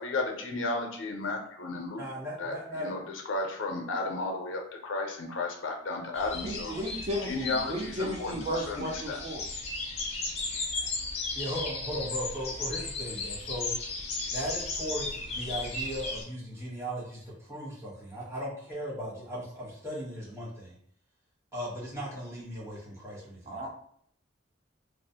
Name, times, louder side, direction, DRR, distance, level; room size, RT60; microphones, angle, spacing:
voice 1, 0.0-2.0 2.4-3.0 3.3-6.7 7.3-8.4 8.7-9.2, left 3 dB, 85° left, 3 dB, 0.5 m, -33 dB
voice 2, 2.0-2.9 10.7-10.9 11.3-13.7 14.3-20.8 21.5-23.7, equal, 15° right, -8 dB, 1.0 m, -37 dB
sound 1, 6.1-16.2, left 3 dB, 35° left, 0.4 m, -36 dB
voice 3, 6.4-9.4 10.5-10.6 23.5-23.7, equal, 30° right, -1 dB, 0.4 m, -34 dB
2.4 x 2.0 x 2.7 m, 0.64 s
head